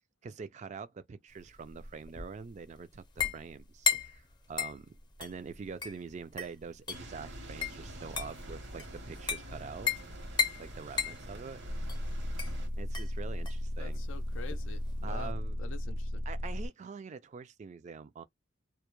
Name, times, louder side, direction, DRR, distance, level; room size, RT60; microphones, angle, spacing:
voice 1, 0.2-4.2 4.5-10.0 10.6-11.6 12.8-14.0 15.0-15.6 16.3-18.2, right 5 dB, 40° right, 0.3 m, -45 dB
sound 1, 1.4-15.3, left 7 dB, 25° left, 0.5 m, -36 dB
sound 2, 6.9-12.7, right 1 dB, 65° right, 0.8 m, -46 dB
sound 3, 11.7-16.7, left 1 dB, 85° right, 0.6 m, -35 dB
voice 2, 13.8-16.2, left 5 dB, 85° left, 0.4 m, -46 dB
2.1 x 2.0 x 3.0 m
head